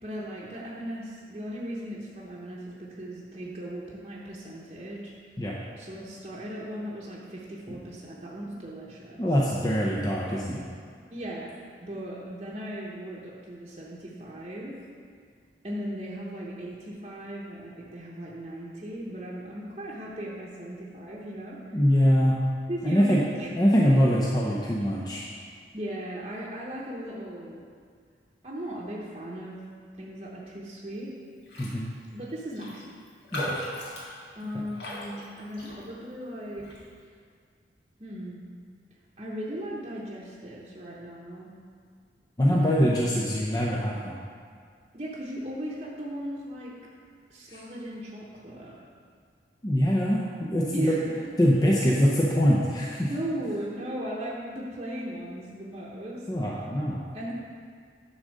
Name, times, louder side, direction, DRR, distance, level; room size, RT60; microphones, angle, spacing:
voice 1, 0.0-5.1 5.8-9.2 11.1-14.8 15.6-21.6 22.7-23.5 25.7-27.6 28.4-29.5 30.0-31.2 32.1-32.8 34.4-36.7 38.0-38.4 39.2-41.5 42.5-42.9 44.9-46.7 47.3-48.8 50.7-51.1 53.1-56.2 57.1-57.3, right 1 dB, 35° right, -5 dB, 0.9 m, -37 dB
voice 2, 9.2-10.6 21.7-22.4 22.8-23.2 23.6-25.2 31.6-31.9 33.3-33.6 42.4-44.1 47.5-47.6 49.6-51.0 51.4-53.1 56.3-57.0, equal, 20° left, -4 dB, 0.6 m, -23 dB
Raindrop, 31.5-31.8 32.1-32.2 32.5-36.1 36.6-36.8, equal, 75° left, 1.8 m, -38 dB
9.8 x 3.8 x 6.4 m, 2.1 s
head